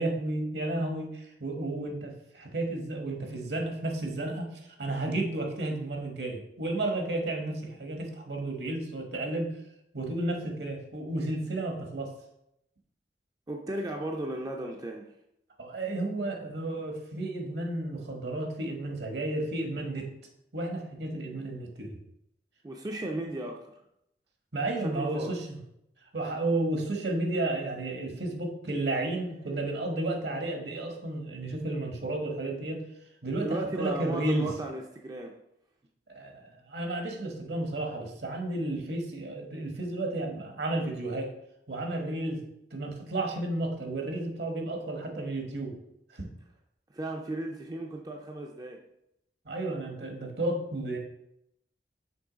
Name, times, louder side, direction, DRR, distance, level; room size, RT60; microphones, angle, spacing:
voice 1, 0.0-4.5 4.8-9.5 9.9-12.1 15.6-20.1 20.5-22.0 24.5-25.6 26.1-32.8 33.2-34.5 36.1-41.3 41.7-42.4 42.7-45.7 46.1-46.3 49.4-51.0, right 2 dB, 65° right, 3 dB, 1.2 m, -32 dB
voice 2, 13.5-15.1 22.6-23.7 24.8-25.4 33.4-35.3 46.9-48.8, right 1 dB, 20° right, 1 dB, 0.4 m, -35 dB
6.1 x 3.2 x 5.0 m, 0.79 s
head